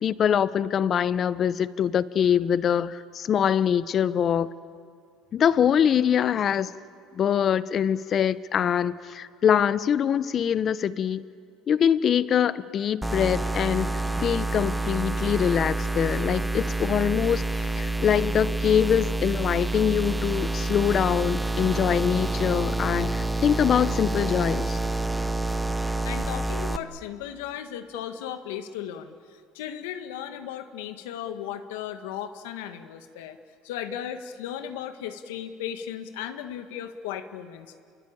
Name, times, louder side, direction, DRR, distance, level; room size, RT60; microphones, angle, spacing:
voice 1, 0.0-4.5 5.3-6.7 7.1-11.2 11.7-24.8, left 8 dB, 40° left, 16 dB, 0.9 m, -24 dB
sound 1, 13.0-26.8, right 2 dB, 5° right, 1.1 m, -28 dB
voice 2, 26.0-29.1 29.5-33.4 33.6-37.8, left 10 dB, 85° left, 8 dB, 1.7 m, -36 dB
28.0 x 23.0 x 8.7 m, 2.3 s
supercardioid pair, 105°, 0 cm